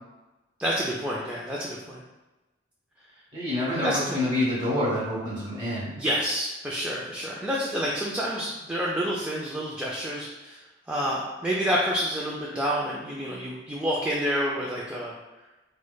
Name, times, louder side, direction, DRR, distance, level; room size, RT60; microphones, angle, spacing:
voice 1, 0.6-2.0 3.7-4.2 6.0-15.1, equal, 5° right, -5 dB, 0.3 m, -29 dB
voice 2, 3.3-5.9, left 1 dB, 25° right, -7 dB, 1.4 m, -27 dB
4.7 x 2.1 x 2.2 m, 1.1 s
head